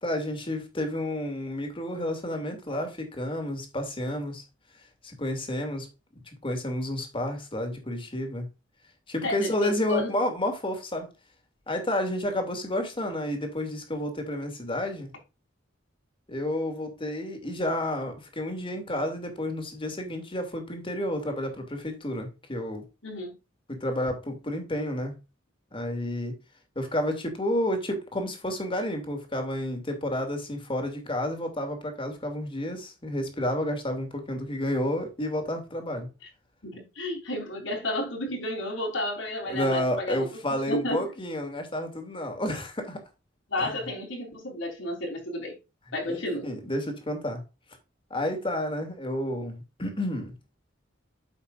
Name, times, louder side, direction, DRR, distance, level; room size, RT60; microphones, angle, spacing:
voice 1, 0.0-4.4 5.0-5.9 6.4-8.5 9.1-11.1 11.7-15.1 16.3-22.8 23.7-25.1 25.7-26.3 26.8-36.1 39.5-43.0 43.6-43.7 46.1-47.4 48.1-50.3, left 1 dB, 30° left, 2.5 m, -30 dB
voice 2, 9.2-10.1 23.0-23.3 36.6-40.2 40.7-41.0 43.5-45.6 45.9-46.5, left 1 dB, 75° left, 3.9 m, -31 dB
9.5 x 7.2 x 2.5 m
head